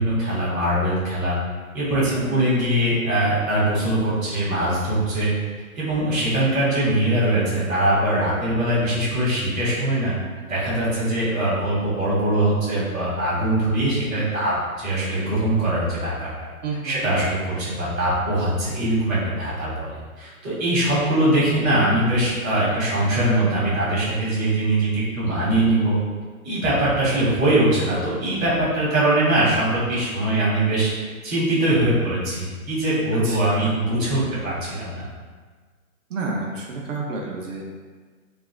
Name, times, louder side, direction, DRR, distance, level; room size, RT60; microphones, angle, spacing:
voice 1, 0.0-1.4 1.7-5.3 5.7-10.1 10.5-16.3 16.8-19.9 20.2-26.0 26.4-30.9 31.2-35.0, right 1 dB, 5° right, -23 dB, 0.5 m, -22 dB
voice 2, 2.0-2.4 16.6-17.1 33.1-33.8 36.1-37.6, right 3 dB, 60° right, -1 dB, 0.6 m, -30 dB
3.3 x 2.4 x 2.4 m, 1.5 s
hypercardioid pair, 170°, 43 cm